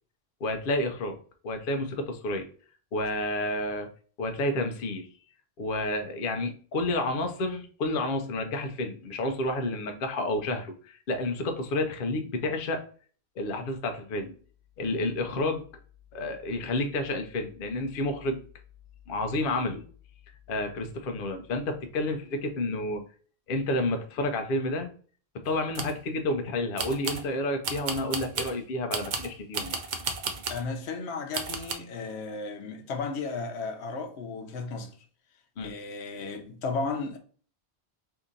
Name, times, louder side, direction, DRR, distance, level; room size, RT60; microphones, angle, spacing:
voice 1, 0.4-1.2 1.4-2.5 2.9-3.9 4.2-5.1 5.6-12.8 13.4-14.3 14.8-15.6 16.1-18.4 19.1-19.8 20.5-23.0 23.5-24.9 25.3-29.8 35.6-35.7, left 2 dB, 60° left, 0.7 m, -30 dB
sound 1, 25.5-26.0 26.8-27.3 27.6-28.6 28.9-30.7 31.3-31.7, right 4 dB, 55° right, 0.6 m, -33 dB
voice 2, 30.5-35.0 35.6-37.2, left 4 dB, 90° left, 0.9 m, -34 dB
2.8 x 2.6 x 3.6 m
omnidirectional pair, 1.1 m